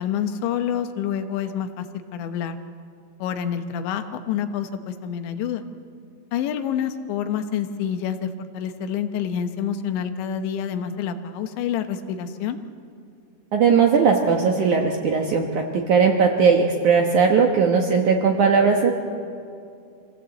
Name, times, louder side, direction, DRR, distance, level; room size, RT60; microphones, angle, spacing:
voice 1, 0.0-1.9 2.1-2.6 3.2-5.6 6.3-12.6, left 8 dB, 85° left, 8 dB, 3.3 m, -27 dB
voice 2, 13.5-18.9, right 5 dB, 70° right, 2 dB, 1.9 m, -18 dB
25.5 x 16.5 x 8.2 m, 2.5 s
omnidirectional pair, 5.1 m